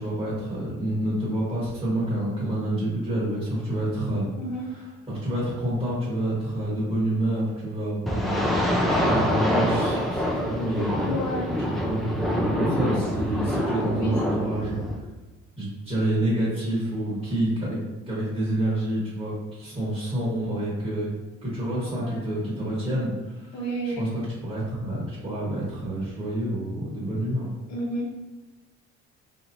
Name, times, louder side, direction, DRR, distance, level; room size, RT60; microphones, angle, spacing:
voice 1, 0.0-4.3 4.6-11.3 11.6-14.8 15.6-17.8 18.1-21.1 21.4-23.6 23.8-27.5, right 1 dB, 20° right, -7 dB, 1.3 m, -28 dB
voice 2, 4.4-4.7 11.1-11.5 13.9-14.5 21.8-22.3 23.5-24.1 27.7-28.2, right 1 dB, 65° left, -3 dB, 1.0 m, -31 dB
sound 1, 8.1-15.0, equal, ahead, 0.5 m, -25 dB
3.0 x 2.7 x 2.6 m, 1.2 s
cardioid pair, 90°, 30 cm